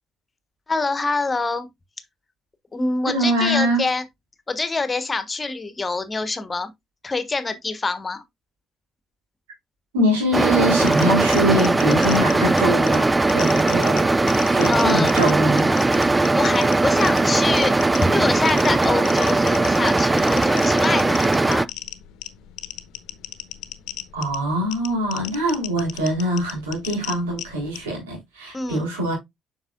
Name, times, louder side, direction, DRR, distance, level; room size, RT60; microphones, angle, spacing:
voice 1, 0.7-1.7 2.7-4.0 4.5-6.7 7.0-8.2 14.7-15.2 16.3-17.8 18.1-21.7 28.5-28.8, left 3 dB, 30° left, 1.3 m, -25 dB
voice 2, 3.1-3.9 9.9-15.7 24.1-29.1, right 1 dB, 80° right, 3.6 m, -23 dB
sound 1, 10.3-21.7, right 2 dB, 20° right, 0.4 m, -19 dB
sound 2, 10.9-27.9, left 13 dB, 65° left, 0.9 m, -37 dB
8.0 x 5.6 x 2.5 m
figure-of-eight pair, 45°, 0 cm